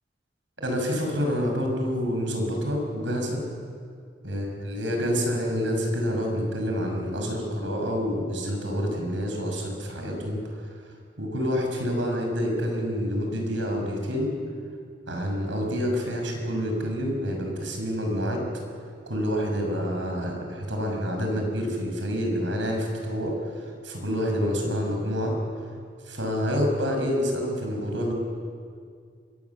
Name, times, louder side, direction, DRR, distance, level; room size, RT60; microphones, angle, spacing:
voice 1, 0.6-3.5 4.2-10.4 11.2-14.3 15.1-18.4 19.1-25.4 26.1-28.1, equal, 85° right, 2 dB, 6.1 m, -27 dB
25.5 x 21.0 x 7.2 m, 2.2 s
head